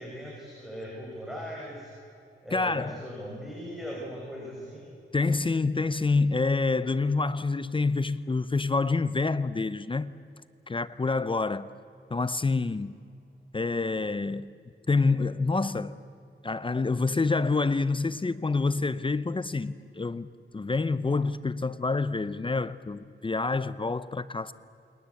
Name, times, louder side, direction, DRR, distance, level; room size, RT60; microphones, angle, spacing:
voice 1, 0.0-1.9 2.4-4.9, equal, ahead, 6.6 m, -39 dB
voice 2, 2.5-3.0 5.1-10.1 10.7-11.7 12.1-12.9 13.5-14.5 14.9-16.0 16.4-20.3 20.5-24.5, left 3 dB, 25° left, 0.7 m, -27 dB
29.0 x 23.0 x 8.5 m
wide cardioid pair, 125°, 20 cm